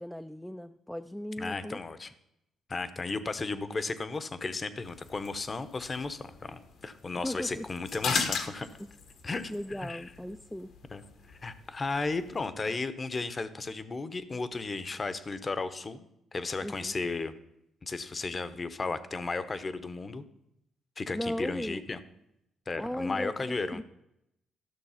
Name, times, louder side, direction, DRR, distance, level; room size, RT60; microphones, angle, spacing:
voice 1, 0.0-1.8 7.2-7.7 9.5-10.7 16.6-16.9 21.1-21.8 22.7-23.8, left 1 dB, 5° left, 7 dB, 0.4 m, -37 dB
voice 2, 1.4-2.1 2.7-8.7 9.2-10.0 10.9-11.0 11.3-16.1 16.3-17.3 17.8-20.3 21.0-22.0 22.7-23.8, left 3 dB, 30° left, 13 dB, 0.8 m, -34 dB
sound 1, 4.8-12.5, left 5 dB, 75° left, 1.4 m, -39 dB
12.5 x 6.4 x 5.7 m, 0.82 s
cardioid pair, 90°, 0 cm